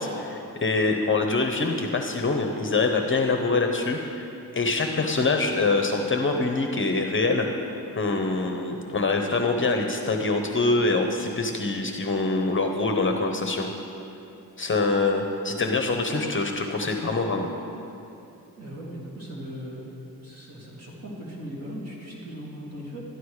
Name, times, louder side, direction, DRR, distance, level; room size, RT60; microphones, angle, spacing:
voice 1, 0.0-4.3 4.5-7.5 7.9-13.7 14.6-17.5, left 3 dB, 35° left, 4 dB, 0.8 m, -24 dB
voice 2, 18.6-19.9 20.2-23.0, equal, 45° right, -5 dB, 3.0 m, -38 dB
12.5 x 11.0 x 4.8 m, 2.8 s
wide cardioid pair, 130°, 36 cm